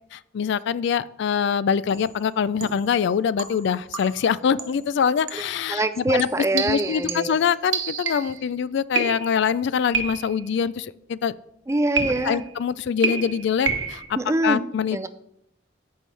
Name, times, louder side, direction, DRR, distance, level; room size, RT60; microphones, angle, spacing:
voice 1, 0.1-6.3 6.5-11.3 12.2-14.2 14.4-15.1, left 7 dB, 65° left, 17 dB, 0.3 m, -24 dB
sound 1, 1.9-2.1 2.6-2.9 3.4-4.3 4.6-4.9 5.3-5.5 6.2-8.4 9.0-9.5 9.9-10.5 12.0-12.5 13.0-14.1, right 5 dB, 85° right, 1.1 m, -29 dB
voice 2, 5.7-7.3 11.7-12.4 14.1-14.6 14.9-15.1, right 2 dB, 15° right, 11 dB, 0.4 m, -24 dB
14.0 x 5.4 x 3.3 m, 0.78 s
head